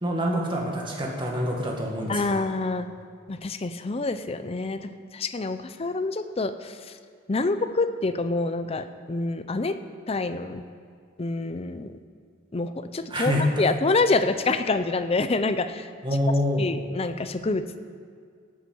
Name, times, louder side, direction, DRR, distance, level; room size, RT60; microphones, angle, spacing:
voice 1, 0.0-2.4 13.1-13.6 16.0-16.6, equal, 25° right, -1 dB, 1.9 m, -26 dB
voice 2, 2.1-2.9 3.3-6.8 7.3-9.8 10.1-10.6 11.2-12.0 12.5-15.9 16.6-17.8, left 3 dB, 30° left, 10 dB, 0.5 m, -27 dB
12.0 x 8.3 x 7.7 m, 2.1 s
head